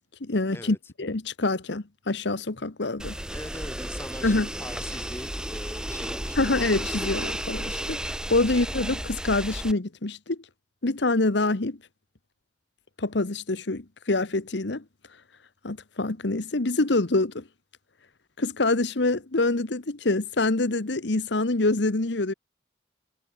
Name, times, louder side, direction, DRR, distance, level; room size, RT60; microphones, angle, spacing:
voice 1, 0.2-3.1 4.2-4.5 6.4-10.4 10.8-11.8 13.0-14.8 15.6-17.4 18.4-22.3, left 2 dB, 70° left, 1.2 m, -26 dB
sound 1, 3.0-9.7, right 1 dB, 5° right, 2.3 m, -33 dB
voice 2, 3.3-6.5 8.5-8.6, left 1 dB, 10° left, 5.3 m, -42 dB
head